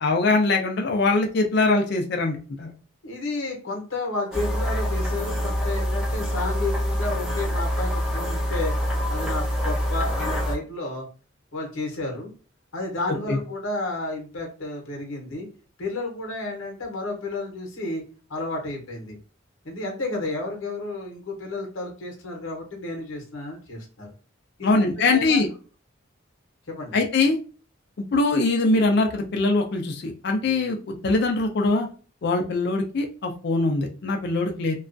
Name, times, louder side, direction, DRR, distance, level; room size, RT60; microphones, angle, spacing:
voice 1, 0.0-2.7 13.3-13.4 24.6-25.5 26.9-27.4 28.0-31.9 32.2-34.7, left 3 dB, 55° left, 3 dB, 0.4 m, -22 dB
voice 2, 3.0-8.7 9.1-11.1 11.5-12.3 12.7-15.5 15.8-18.0 18.3-19.2 19.6-24.1 24.6-25.4 26.7-27.0, left 2 dB, 85° left, 1 dB, 0.8 m, -31 dB
sound 1, 4.3-10.6, equal, 5° right, 0.5 m, -25 dB
2.3 x 2.2 x 2.5 m, 0.37 s
head